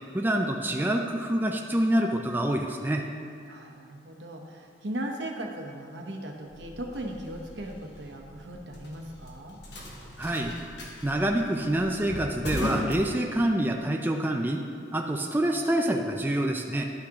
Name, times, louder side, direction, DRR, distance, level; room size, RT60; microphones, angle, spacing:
voice 1, 0.1-3.1 10.2-10.6 11.0-14.6 14.9-16.8, right 1 dB, 10° right, 2 dB, 0.3 m, -26 dB
voice 2, 3.5-9.6, right 1 dB, 80° right, 2 dB, 0.9 m, -38 dB
sound 1, 6.5-13.8, left 1 dB, 75° left, 1.1 m, -38 dB
11.5 x 6.0 x 2.9 m, 2.3 s
head